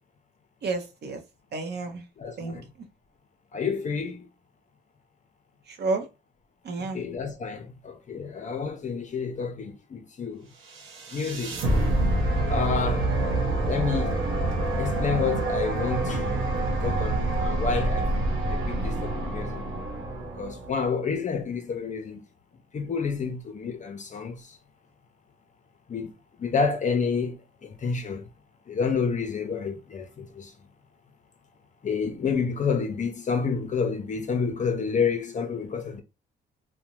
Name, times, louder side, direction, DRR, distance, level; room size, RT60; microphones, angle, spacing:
voice 1, 0.6-1.2 1.5-2.0 2.4-2.6 5.7-6.1 6.6-7.0, right 3 dB, 55° right, 0.7 m, -30 dB
voice 2, 2.2-2.7 3.5-4.2 6.8-10.4 11.1-11.5 12.5-13.2 13.7-14.1 14.8-16.4 16.8-18.1 18.5-19.6 20.3-22.2 22.7-24.4 25.9-26.1 26.4-28.2 28.7-30.5 31.8-36.0, left 5 dB, 40° left, 0.5 m, -29 dB
sound 1, 10.7-20.9, right 2 dB, 90° right, 0.7 m, -27 dB
2.6 x 2.1 x 2.9 m
cardioid pair, 90°, 20 cm